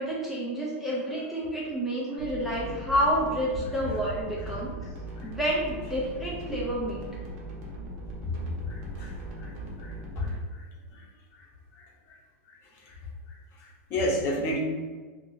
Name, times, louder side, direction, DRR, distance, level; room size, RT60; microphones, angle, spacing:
voice 1, 0.0-4.7 5.2-7.0, equal, 5° right, -6 dB, 0.5 m, -29 dB
sound 1, 2.2-10.3, right 2 dB, 60° right, 0.9 m, -39 dB
voice 2, 8.7-9.1 9.4-9.5 9.8-10.6 10.9-11.0 12.9-13.0 13.9-14.6, left 1 dB, 35° left, -2 dB, 0.9 m, -31 dB
2.7 x 2.5 x 4.0 m, 1.4 s
supercardioid pair, 145°, 7 cm